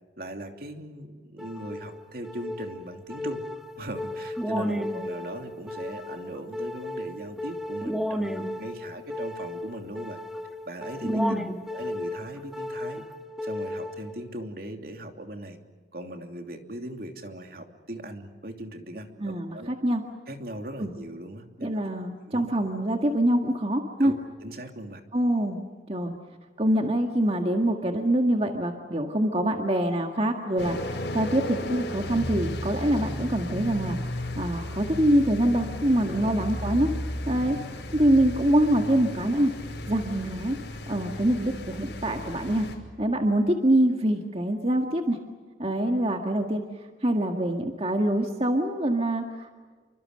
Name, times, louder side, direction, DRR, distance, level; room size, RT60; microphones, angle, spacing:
voice 1, 0.2-3.4 3.8-10.2 10.7-11.2 11.7-13.0 13.4-15.6 15.9-19.7 20.3-21.7 22.3-22.5 24.0-24.1 24.4-25.0 36.0-36.7, right 1 dB, 55° right, 5 dB, 2.9 m, -39 dB
sound 1, 1.4-14.4, left 1 dB, ahead, 1.6 m, -34 dB
voice 2, 11.0-11.5 19.2-20.0 20.8-20.9 21.6-24.1 25.1-25.6 25.9-26.1 26.6-36.9 37.3-37.6 37.9-39.5 39.9-40.6 40.9-42.7 43.0-45.2 45.6-46.6 47.0-49.5, right 1 dB, 35° right, 3 dB, 1.8 m, -25 dB
sound 2, 30.6-42.7, left 1 dB, 75° left, 5.8 m, -34 dB
28.5 x 25.0 x 6.7 m, 1.5 s
head